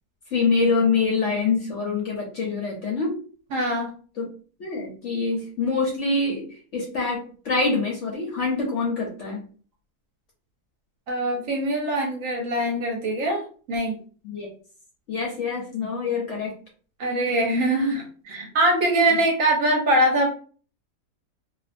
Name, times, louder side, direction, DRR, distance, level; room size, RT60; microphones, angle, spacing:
voice 1, 0.3-3.2 4.2-4.3 4.6-9.4 14.2-14.5 15.1-16.5, left 4 dB, 60° left, -2 dB, 0.8 m, -25 dB
voice 2, 3.5-3.9 11.1-14.0 17.0-20.3, right 1 dB, 65° right, 1 dB, 0.9 m, -23 dB
2.6 x 2.2 x 2.5 m, 0.41 s
omnidirectional pair, 1.7 m